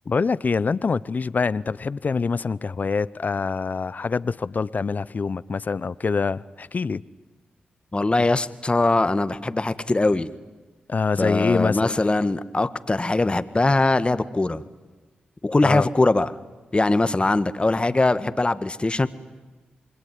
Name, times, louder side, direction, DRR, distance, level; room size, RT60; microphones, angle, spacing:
voice 1, 0.1-7.0 10.9-12.1 15.6-15.9, left 4 dB, 50° left, 0.8 m, -25 dB
voice 2, 7.9-10.3 11.2-14.6 15.4-16.3 16.7-19.1, left 2 dB, 30° left, 1.6 m, -21 dB
27.0 x 21.5 x 9.5 m
supercardioid pair, 40°, 4 cm